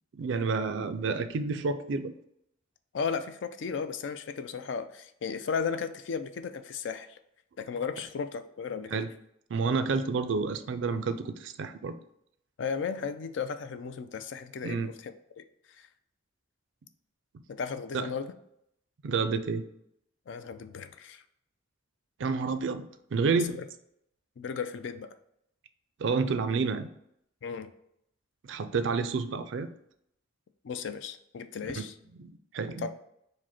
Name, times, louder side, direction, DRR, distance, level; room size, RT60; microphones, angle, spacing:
voice 1, 0.1-2.1 8.9-9.1 9.5-11.9 14.6-14.9 17.9-18.1 19.0-19.7 22.2-23.6 26.0-26.9 28.4-29.7 31.8-31.9 32.2-32.9, right 4 dB, 65° right, 11 dB, 0.4 m, -29 dB
voice 2, 2.9-7.2 7.6-9.0 12.6-14.9 15.4-15.5 15.8-15.9 17.5-18.3 20.3-21.2 23.5-23.6 24.4-25.1 27.4-27.7 30.6-31.9 32.8-32.9, left 6 dB, 65° left, 9 dB, 0.4 m, -35 dB
4.9 x 2.1 x 4.3 m, 0.75 s
head